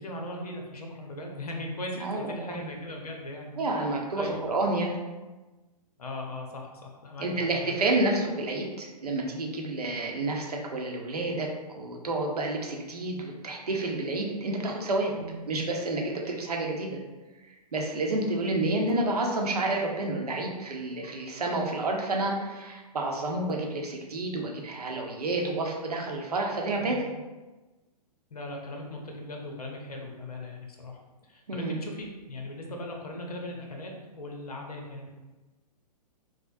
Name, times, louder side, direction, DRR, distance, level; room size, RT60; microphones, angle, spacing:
voice 1, 0.0-3.5 4.1-4.6 6.0-7.8 15.2-15.4 26.8-27.0 28.3-35.1, left 1 dB, 65° left, 1 dB, 0.8 m, -39 dB
voice 2, 2.0-2.6 3.6-5.0 7.2-15.2 15.5-17.0 17.5-27.0 31.5-31.8, right 2 dB, 70° right, 1 dB, 0.7 m, -29 dB
4.7 x 2.1 x 2.6 m, 1.2 s
figure-of-eight pair, 115°, 21 cm